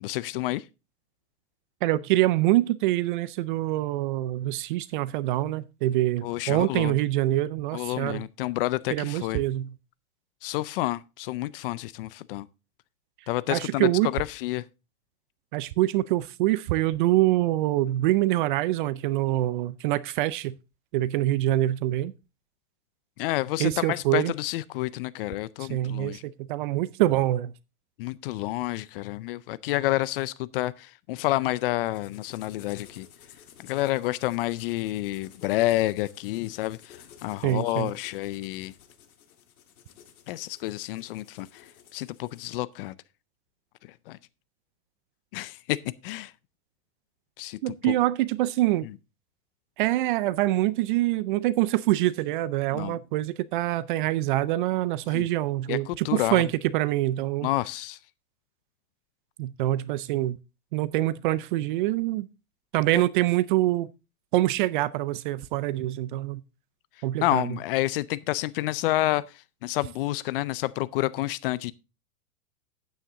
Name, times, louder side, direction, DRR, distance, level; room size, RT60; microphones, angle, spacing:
voice 1, 0.0-0.6 6.2-7.0 7.7-9.4 10.4-12.5 13.3-14.7 23.2-26.2 28.0-33.1 33.6-38.7 40.3-43.0 44.1-44.2 45.3-46.3 47.4-47.9 52.7-53.0 55.1-55.3 55.7-56.5 57.4-58.0 67.2-71.7, left 17 dB, 40° left, 0.5 m, -29 dB
voice 2, 1.8-8.2 8.9-9.7 13.5-14.1 15.5-20.6 20.9-22.1 23.6-24.3 25.6-27.5 37.4-37.9 47.6-48.9 49.8-56.5 56.7-57.5 59.4-60.4 60.7-62.3 62.7-63.9 64.3-66.4 67.0-67.6, right 15 dB, 35° right, 0.4 m, -25 dB
sound 1, 31.8-42.5, left 9 dB, 70° left, 2.2 m, -53 dB
9.5 x 9.1 x 3.8 m
hypercardioid pair, 130°, 44 cm